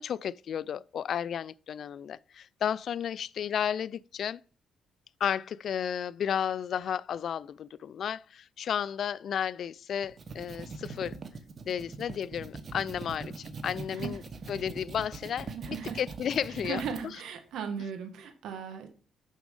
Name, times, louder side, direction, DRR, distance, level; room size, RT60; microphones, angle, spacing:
voice 1, 0.0-4.4 5.2-11.2 11.7-14.2 14.5-17.2, left 8 dB, 60° left, 0.3 m, -33 dB
sound 1, 10.0-17.0, right 4 dB, 45° right, 1.1 m, -42 dB
voice 2, 15.5-16.0 16.6-18.9, right 7 dB, 80° right, 1.6 m, -37 dB
6.3 x 6.2 x 5.3 m
cardioid pair, 90°, 0 cm